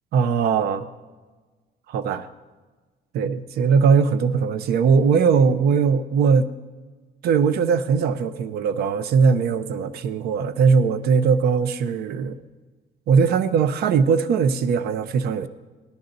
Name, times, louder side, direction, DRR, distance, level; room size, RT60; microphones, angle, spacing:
voice 1, 0.1-0.9 1.9-2.3 3.1-6.5 7.2-12.4 13.1-15.5, right 6 dB, 70° right, 13 dB, 0.7 m, -20 dB
17.0 x 11.0 x 3.9 m, 1.3 s
cardioid pair, 110°, 17 cm